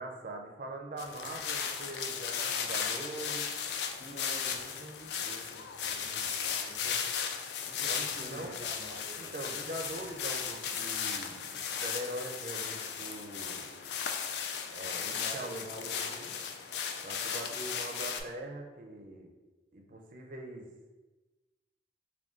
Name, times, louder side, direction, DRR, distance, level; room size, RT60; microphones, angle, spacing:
voice 1, 0.0-3.4 7.9-8.5 9.1-13.7 14.7-16.0 17.0-19.3 19.7-20.7, right 1 dB, 45° right, 2 dB, 0.4 m, -42 dB
sound 1, 1.0-18.2, left 7 dB, 65° left, 0.3 m, -36 dB
voice 2, 4.0-7.1 7.6-9.6 14.9-16.3, equal, 80° left, -4 dB, 1.0 m, -48 dB
3.6 x 2.2 x 3.7 m, 1.2 s
head